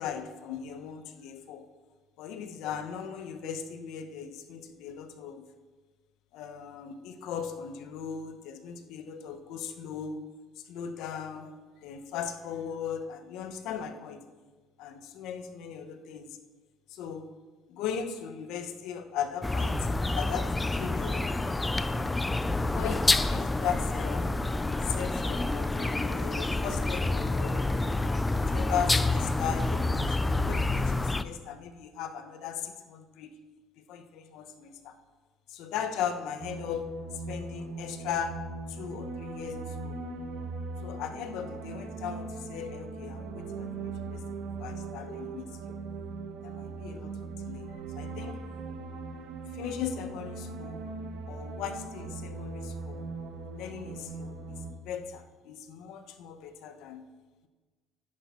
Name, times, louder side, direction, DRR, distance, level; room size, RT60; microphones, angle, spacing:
voice 1, 0.0-1.7 2.2-5.5 6.3-10.2 10.6-11.5 11.8-14.3 14.8-16.4 16.9-17.3 17.7-19.9 20.1-21.3 22.6-24.3 24.8-27.7 28.3-33.3 33.8-35.0 35.5-36.9 37.3-38.4 38.7-40.0 40.8-45.8 46.4-48.5 49.5-50.9 51.3-53.1 53.5-57.0, left 8 dB, 65° left, 8 dB, 0.9 m, -38 dB
sound 1, 19.4-31.2, left 2 dB, 10° left, 0.3 m, -28 dB
sound 2, 36.4-54.7, right 3 dB, 85° right, 1.3 m, -39 dB
10.0 x 9.9 x 4.3 m, 1.3 s
cardioid pair, 165°, 0 cm